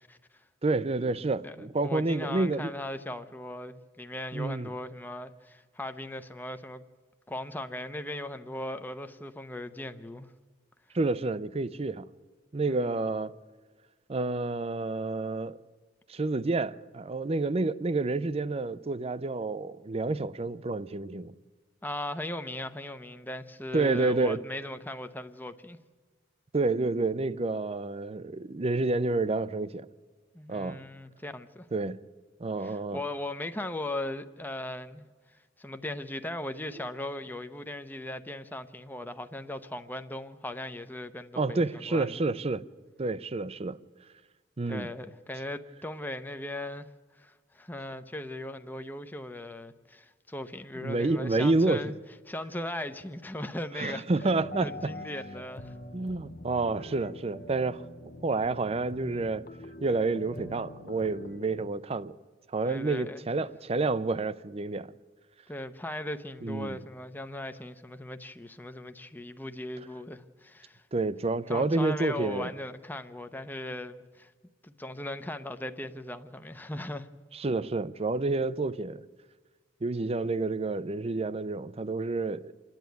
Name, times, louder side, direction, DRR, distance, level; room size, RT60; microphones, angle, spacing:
voice 1, 0.6-2.7 4.3-4.7 10.9-12.1 12.5-13.3 14.1-15.6 16.1-21.3 23.7-24.4 26.5-29.9 30.5-30.8 31.7-32.0 32.4-33.0 41.4-42.6 43.0-43.8 44.6-44.9 50.8-51.8 53.7-54.9 55.9-57.8 58.2-59.5 59.8-62.1 62.5-64.9 66.4-66.8 70.9-72.5 77.3-79.0 79.8-82.5, right 3 dB, 35° right, 0.5 m, -29 dB
voice 2, 1.8-6.8 7.3-10.3 12.7-13.0 21.8-25.8 30.3-31.7 32.6-35.0 35.3-42.1 44.7-46.9 47.1-51.9 52.3-54.1 54.6-55.7 62.6-63.3 65.5-70.8 71.5-74.3 74.6-77.1, left 1 dB, 10° left, 0.7 m, -38 dB
sound 1, 54.1-61.7, left 1 dB, 55° left, 1.0 m, -44 dB
26.5 x 10.5 x 9.3 m
head